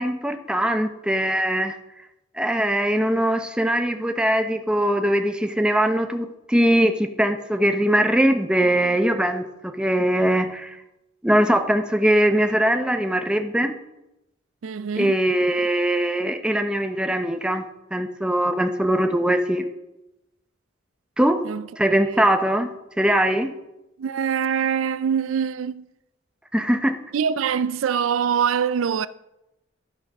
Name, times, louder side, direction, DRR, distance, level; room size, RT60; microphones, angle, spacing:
voice 1, 0.0-1.8 2.4-10.8 11.2-13.7 15.0-17.6 17.9-19.7 21.2-21.4 21.8-22.7 23.0-23.5 26.5-27.0, right 1 dB, 5° right, 0.7 m, -21 dB
voice 2, 14.6-15.2 21.4-21.6 22.1-22.2 24.0-25.9 27.1-29.1, right 7 dB, 85° right, 0.4 m, -24 dB
12.5 x 6.4 x 5.3 m
head